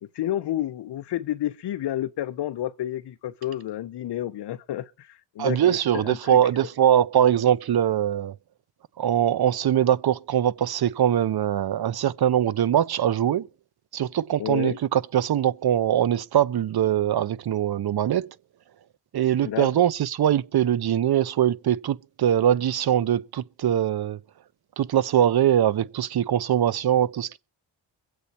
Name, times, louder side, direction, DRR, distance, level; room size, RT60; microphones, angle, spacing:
voice 1, 0.0-6.4 14.4-14.8 19.4-19.8, left 12 dB, 55° left, 0.7 m, -30 dB
voice 2, 5.4-8.3 9.0-13.5 13.9-18.3 19.1-24.2 24.8-27.4, right 10 dB, 50° right, 0.8 m, -22 dB
23.0 x 8.1 x 4.2 m
cardioid pair, 90°, 50 cm